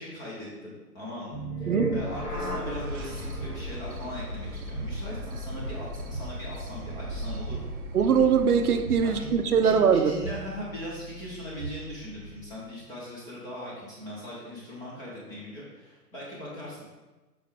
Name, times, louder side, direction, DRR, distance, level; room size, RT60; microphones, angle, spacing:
voice 1, 0.0-7.7 9.0-9.3 9.6-17.0, left 1 dB, 10° left, -6 dB, 0.6 m, -40 dB
sound 1, 1.3-12.4, right 1 dB, 75° left, 1.8 m, -37 dB
sound 2, 2.6-9.9, right 1 dB, 35° right, 0.6 m, -38 dB
voice 2, 7.9-10.1, right 6 dB, 70° right, 7 dB, 0.7 m, -22 dB
6.9 x 4.6 x 3.3 m, 1.2 s
figure-of-eight pair, 125°, 47 cm